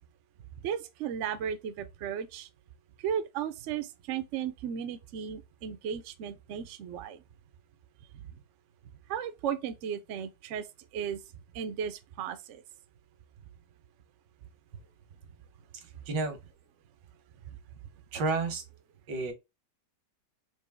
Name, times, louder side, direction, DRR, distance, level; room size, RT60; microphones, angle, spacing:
voice 1, 0.6-2.5 3.0-7.2 8.1-8.2 9.1-10.7 10.9-11.2 11.5-12.6, right 8 dB, 65° right, 0.7 m, -35 dB
voice 2, 16.1-16.4 18.1-18.6 19.1-19.3, right 3 dB, 90° right, 1.8 m, -30 dB
4.5 x 2.7 x 3.4 m
omnidirectional pair, 1.8 m